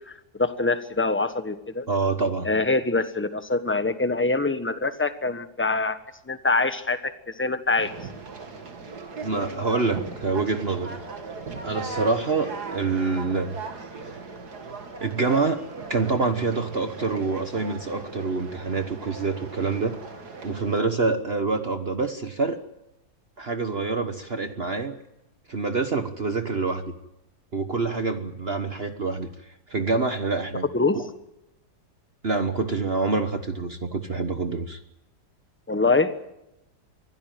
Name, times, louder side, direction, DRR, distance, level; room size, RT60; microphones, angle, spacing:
voice 1, 0.1-1.9 2.4-6.0 6.3-7.9 30.7-31.0 35.7-36.1, left 3 dB, 10° left, 10 dB, 1.1 m, -24 dB
voice 2, 1.9-2.5 9.2-11.0 11.6-13.5 15.0-15.6 15.9-19.9 20.4-22.6 23.4-25.0 25.5-26.8 27.5-29.3 29.7-30.7 32.2-34.8, right 4 dB, 40° right, 8 dB, 1.3 m, -26 dB
Conversation, 7.8-20.8, right 4 dB, 70° right, 2.8 m, -38 dB
24.5 x 16.5 x 9.2 m, 0.89 s
omnidirectional pair, 1.8 m